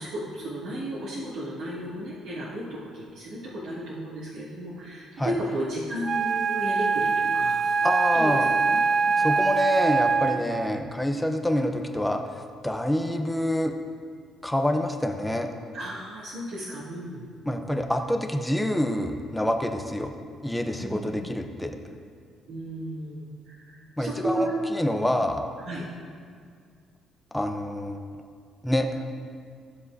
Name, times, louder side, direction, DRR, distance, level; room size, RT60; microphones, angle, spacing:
voice 1, 0.0-7.9 8.1-8.4 8.7-8.8 9.0-9.2 15.7-17.2 20.8-21.2 22.5-24.5 25.0-25.1 25.6-25.8, right 1 dB, 90° right, -13 dB, 2.6 m, -34 dB
Wind instrument woodwind instrument, 6.0-10.6, right 5 dB, 35° right, 0.3 m, -23 dB
voice 2, 7.8-8.5 9.2-13.7 14.4-15.5 17.4-20.1 20.4-21.8 24.0-25.4 27.3-28.0 28.6-29.1, left 1 dB, 5° left, 4 dB, 0.7 m, -27 dB
15.0 x 7.4 x 2.7 m, 2.1 s
cardioid pair, 130°, 0 cm